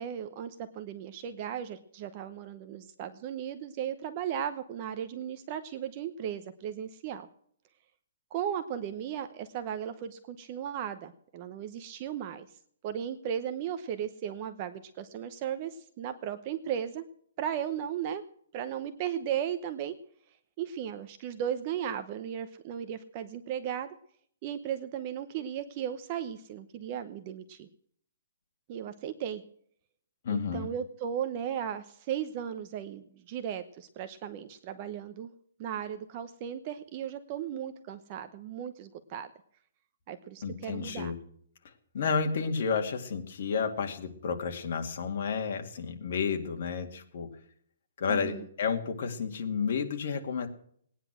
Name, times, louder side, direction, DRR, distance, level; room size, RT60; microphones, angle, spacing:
voice 1, 0.0-7.3 8.3-12.5 12.8-17.0 17.4-18.2 18.5-19.9 20.6-23.9 24.4-27.7 28.7-29.4 30.3-35.3 35.6-39.3 40.1-41.1 48.1-48.5, right 9 dB, 30° right, 9 dB, 0.8 m, -36 dB
voice 2, 30.2-30.7 40.4-41.2 41.9-47.3 48.0-50.5, left 5 dB, 50° left, 4 dB, 2.4 m, -31 dB
19.0 x 10.0 x 6.2 m, 0.63 s
hypercardioid pair, 170°, 0 cm